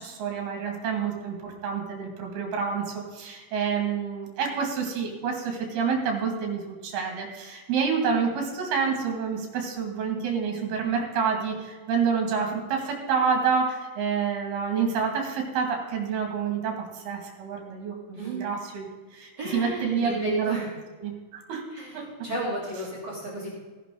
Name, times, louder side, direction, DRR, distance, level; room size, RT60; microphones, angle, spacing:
voice 1, 0.0-18.9 19.1-20.6 21.0-22.1, right 6 dB, 60° right, 2 dB, 3.9 m, -28 dB
voice 2, 18.1-18.5 19.4-20.7 21.7-23.5, right 2 dB, 25° right, -5 dB, 3.3 m, -32 dB
17.0 x 10.0 x 3.9 m, 1.4 s
omnidirectional pair, 5.4 m